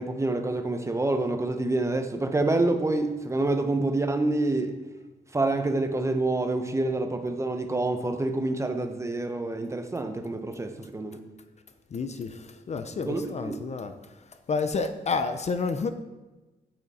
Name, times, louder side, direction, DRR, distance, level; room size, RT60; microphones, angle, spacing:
voice 1, 0.0-4.7 5.3-11.2 13.1-13.6, right 2 dB, 15° right, 0.7 m, -27 dB
voice 2, 11.9-15.9, left 4 dB, 40° left, 0.5 m, -30 dB
9.1 x 7.8 x 4.1 m
wide cardioid pair, 170°, 17 cm